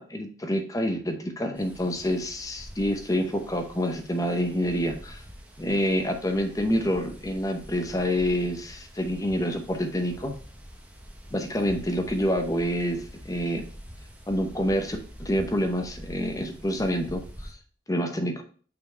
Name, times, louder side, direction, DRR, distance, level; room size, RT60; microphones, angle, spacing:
voice 1, 0.0-5.2 5.6-10.3 11.3-13.6 14.3-17.5 17.9-18.4, equal, 20° left, 5 dB, 0.8 m, -27 dB
sound 1, 1.5-17.5, equal, 10° right, 0.9 m, -45 dB
5.7 x 4.4 x 4.4 m, 0.40 s
head